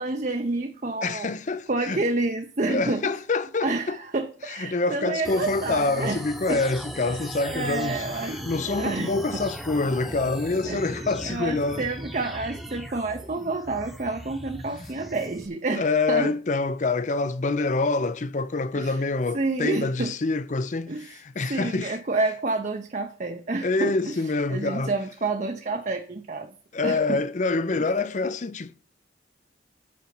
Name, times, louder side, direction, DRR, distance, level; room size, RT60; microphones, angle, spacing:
voice 1, 0.0-1.3 1.7-3.1 3.6-6.2 6.5-6.6 7.4-8.4 8.7-9.4 10.6-16.3 18.7-19.0 19.3-20.1 20.9-21.1 21.5-24.1 24.5-26.5 26.8-27.2 27.7-27.8, right 3 dB, 40° right, 0.7 m, -29 dB
voice 2, 1.0-2.0 2.7-4.0 4.5-11.8 14.7-14.9 15.7-22.0 23.6-24.9 26.7-28.7, left 3 dB, 40° left, 0.5 m, -26 dB
futuristic laser shutdown, 5.2-15.5, equal, ahead, 1.0 m, -38 dB
8.5 x 5.2 x 6.0 m
head